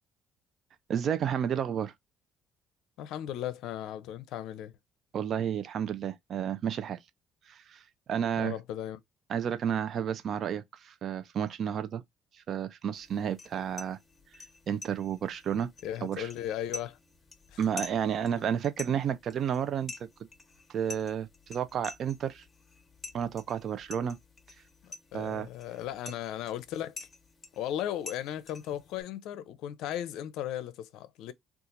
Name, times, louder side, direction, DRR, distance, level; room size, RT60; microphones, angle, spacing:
voice 1, 0.9-1.9 5.1-7.0 7.5-7.8 8.1-8.6 9.3-12.0 12.5-14.0 14.7-15.7 16.0-16.3 17.6-20.1 20.7-22.4 23.1-24.2 25.1-25.5, right 8 dB, 55° right, 0.5 m, -31 dB
voice 2, 3.0-4.7 8.4-9.0 15.8-17.0 17.5-17.6 24.8-27.0 27.6-31.3, left 11 dB, 75° left, 0.5 m, -36 dB
sound 1, 12.9-29.0, left 3 dB, 30° left, 0.9 m, -48 dB
2.8 x 2.4 x 3.8 m
supercardioid pair, 70°, 0 cm